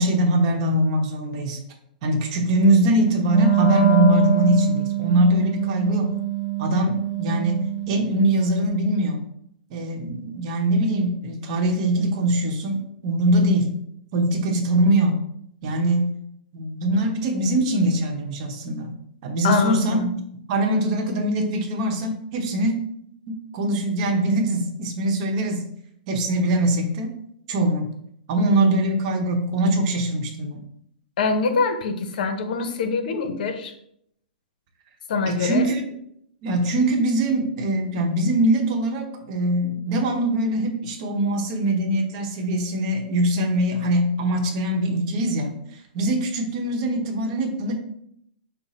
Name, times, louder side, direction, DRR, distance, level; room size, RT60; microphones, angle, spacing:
voice 1, 0.0-1.6 2.0-6.2 6.6-9.3 9.7-13.7 14.1-15.2 15.6-16.1 16.5-18.9 19.2-20.0 20.5-22.7 23.5-25.7 26.1-27.1 27.5-27.9 28.3-30.6 35.3-35.8 36.4-45.5 45.9-47.7, right 1 dB, 40° right, 3 dB, 0.9 m, -22 dB
Wind instrument woodwind instrument, 3.2-8.3, right 9 dB, 5° left, 0.5 m, -24 dB
voice 2, 19.4-20.1 31.2-33.7 35.1-35.7, left 4 dB, 65° left, 7 dB, 0.7 m, -24 dB
5.6 x 2.1 x 4.2 m, 0.72 s
hypercardioid pair, 145°, 5 cm